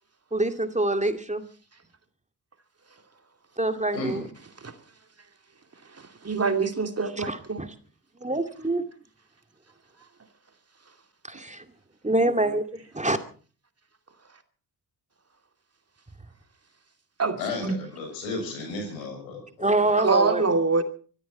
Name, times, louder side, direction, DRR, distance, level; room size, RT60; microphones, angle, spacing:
voice 1, 0.3-1.4 3.6-4.2 7.2-7.7 8.2-8.8 11.3-11.6 12.0-13.2 19.6-20.4, right 2 dB, 15° right, 2.3 m, -25 dB
voice 2, 3.9-4.3 17.4-19.7, left 3 dB, 85° left, 6.5 m, -33 dB
voice 3, 6.2-7.6 17.2-17.8 20.0-20.8, right 4 dB, 30° right, 2.7 m, -24 dB
24.5 x 14.0 x 4.2 m
hypercardioid pair, 40°, 49 cm